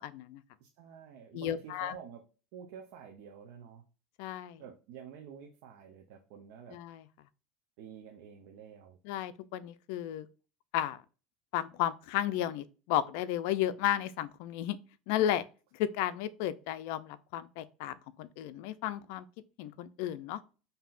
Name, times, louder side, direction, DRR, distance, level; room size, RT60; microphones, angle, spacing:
voice 1, 0.0-0.4 1.3-2.0 4.2-4.6 6.7-7.1 9.0-10.3 10.7-11.0 11.5-14.8 15.1-15.4 15.7-19.3 19.6-20.4, left 11 dB, 70° left, 0.4 m, -33 dB
voice 2, 0.6-2.2 2.5-3.8 4.6-6.8 7.8-9.0, right 7 dB, 65° right, 0.6 m, -49 dB
5.6 x 2.7 x 2.5 m
supercardioid pair, 150°, 0 cm